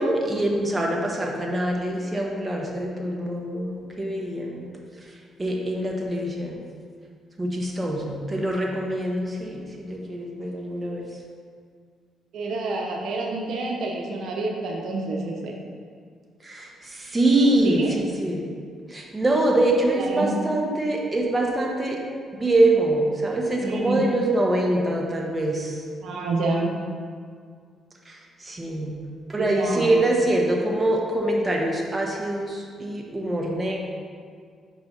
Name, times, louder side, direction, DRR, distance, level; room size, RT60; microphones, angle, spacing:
voice 1, 0.0-4.7 5.4-6.6 7.4-11.0 16.4-18.4 18.9-22.0 22.4-25.8 28.1-29.0 29.3-33.8, right 1 dB, 20° right, -1 dB, 1.1 m, -24 dB
voice 2, 12.3-15.5 17.4-17.9 20.0-20.3 23.6-24.0 26.0-26.7 29.4-30.0, right 3 dB, 75° right, 0 dB, 0.8 m, -28 dB
5.4 x 4.3 x 5.9 m, 2.1 s
cardioid pair, 90°, 0 cm